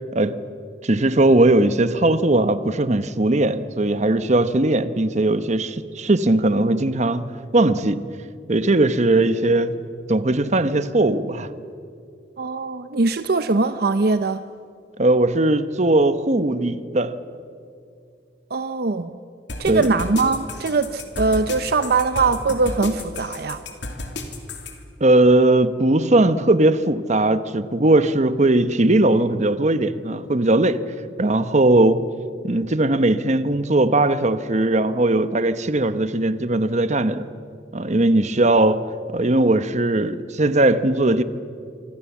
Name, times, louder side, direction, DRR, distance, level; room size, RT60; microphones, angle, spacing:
voice 1, 0.8-7.2 7.5-8.0 8.5-9.8 10.1-11.5 15.0-17.2 19.7-19.9 25.0-30.8 31.2-32.1 32.4-37.3 37.7-38.8 39.1-41.2, right 2 dB, 40° right, 1.0 m, -19 dB
voice 2, 12.4-14.4 18.5-19.2 19.6-23.6, right 3 dB, 60° right, 0.7 m, -21 dB
sound 1, 19.5-24.7, left 2 dB, 85° left, 3.0 m, -32 dB
26.5 x 24.5 x 7.3 m
head